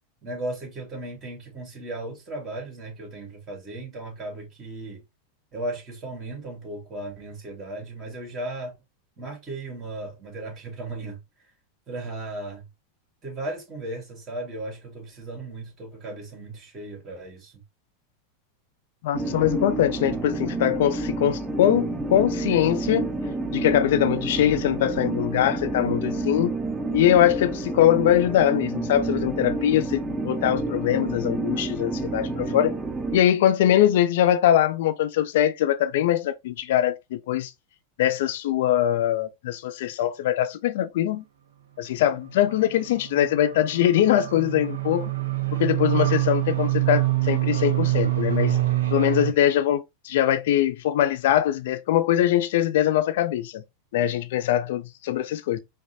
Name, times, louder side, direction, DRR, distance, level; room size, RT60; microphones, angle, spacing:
voice 1, 0.2-5.0 5.5-8.8 9.2-11.2 11.9-12.7 13.2-17.6 49.3-49.5, right 2 dB, 30° right, 2.2 m, -36 dB
voice 2, 19.0-23.1 23.5-26.5 26.9-32.8 33.1-37.5 38.0-41.2 41.8-45.1 45.5-48.6 48.9-53.6 53.9-55.6, left 12 dB, 65° left, 0.5 m, -22 dB
sound 1, 19.1-33.2, right 2 dB, 10° right, 0.9 m, -29 dB
sound 2, 42.3-49.3, right 16 dB, 75° right, 0.8 m, -25 dB
5.0 x 2.1 x 2.8 m
hypercardioid pair, 95°, 0 cm